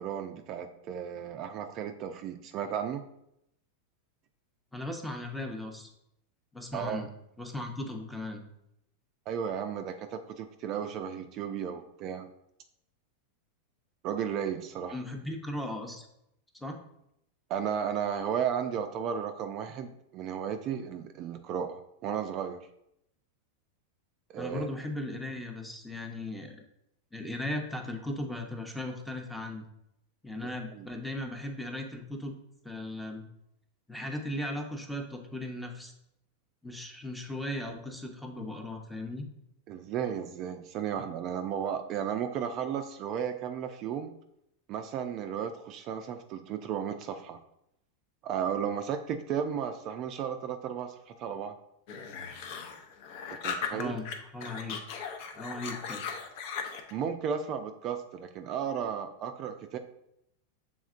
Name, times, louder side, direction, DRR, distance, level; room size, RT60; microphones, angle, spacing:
voice 1, 0.0-3.0 6.7-7.0 9.3-12.3 14.0-15.0 17.5-22.7 24.3-24.7 30.7-30.9 39.7-44.1 44.7-47.4 48.2-51.5 53.3-54.0 56.9-59.8, right 8 dB, 45° right, 7 dB, 0.3 m, -34 dB
voice 2, 4.7-5.9 6.5-7.1 7.4-8.4 14.9-16.1 16.6-16.8 24.4-26.6 27.1-29.6 30.2-32.4 32.6-33.2 33.9-35.9 36.6-39.3 53.7-54.1 54.3-54.8 55.3-56.0, left 1 dB, 5° left, 3 dB, 0.7 m, -37 dB
sound 1, 51.9-54.1 54.4-56.9, left 7 dB, 60° left, 0.6 m, -38 dB
6.2 x 3.5 x 2.5 m, 0.79 s
hypercardioid pair, 120°, 0 cm